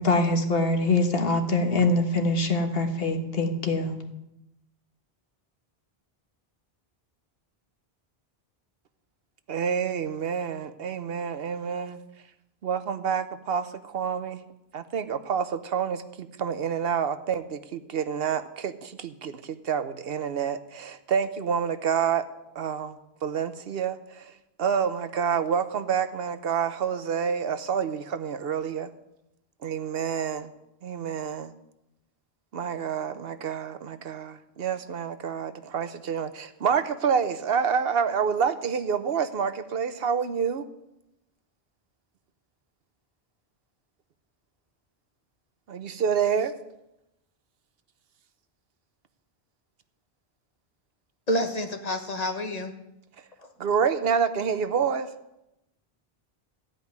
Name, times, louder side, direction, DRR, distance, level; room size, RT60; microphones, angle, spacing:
voice 1, 0.0-4.0, left 2 dB, 70° left, 5 dB, 1.5 m, -24 dB
voice 2, 9.5-12.0 12.6-14.4 14.7-22.2 22.5-24.3 24.6-28.9 29.6-30.5 30.8-31.5 32.5-40.6 45.7-46.5 53.6-55.1, right 7 dB, 70° right, 11 dB, 1.0 m, -28 dB
voice 3, 51.3-52.7 53.4-53.5, equal, 40° left, 5 dB, 1.3 m, -28 dB
14.5 x 5.3 x 9.4 m, 0.87 s
omnidirectional pair, 1.0 m